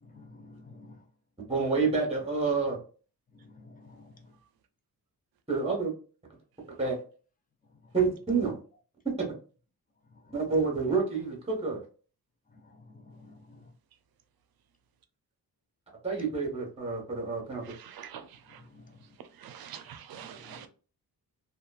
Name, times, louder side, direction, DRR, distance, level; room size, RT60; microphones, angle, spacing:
voice 1, 0.0-1.0 3.3-4.3 10.1-10.2 12.5-13.7 18.5-19.0 20.2-20.6, left 2 dB, 25° left, 0.5 m, -53 dB
voice 2, 1.5-2.8 5.5-5.9 6.8-7.0 7.9-8.5 9.2-9.3 10.3-11.8 16.0-17.6, right 4 dB, 15° right, 1.1 m, -28 dB
voice 3, 17.8-18.2 19.4-20.7, right 9 dB, 70° right, 0.5 m, -44 dB
2.9 x 2.3 x 2.3 m
wide cardioid pair, 115°, 37 cm